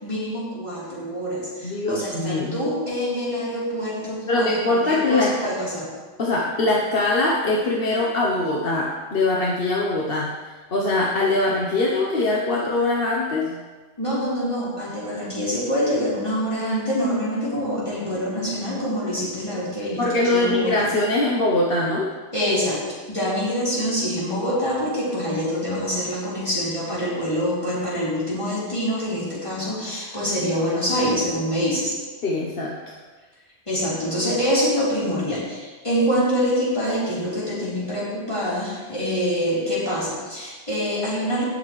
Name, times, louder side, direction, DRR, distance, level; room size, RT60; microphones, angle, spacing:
voice 1, 0.0-5.9 14.0-20.9 22.3-22.8 23.1-32.0 33.7-41.4, equal, 25° left, -9 dB, 3.9 m, -25 dB
voice 2, 1.6-2.6 4.3-5.5 6.2-13.6 20.0-22.1 32.2-32.9, left 2 dB, 50° left, -2 dB, 1.2 m, -22 dB
17.5 x 6.6 x 3.2 m, 1.3 s
omnidirectional pair, 1.3 m